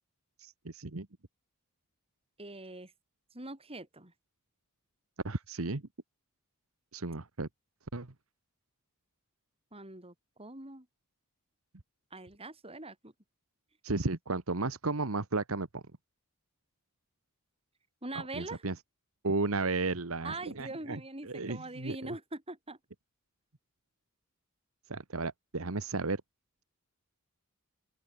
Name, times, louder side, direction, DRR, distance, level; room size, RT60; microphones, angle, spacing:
voice 1, 0.4-1.1 5.2-5.8 6.9-7.5 7.9-8.1 13.8-15.8 18.3-18.7 19.2-21.0 21.3-21.9 24.9-26.2, right 3 dB, 75° right, 1.4 m, -33 dB
voice 2, 2.4-2.9 3.3-4.1 9.7-10.9 12.1-13.1 18.0-18.6 20.2-22.8, right 2 dB, 25° right, 7.5 m, -43 dB
open air
head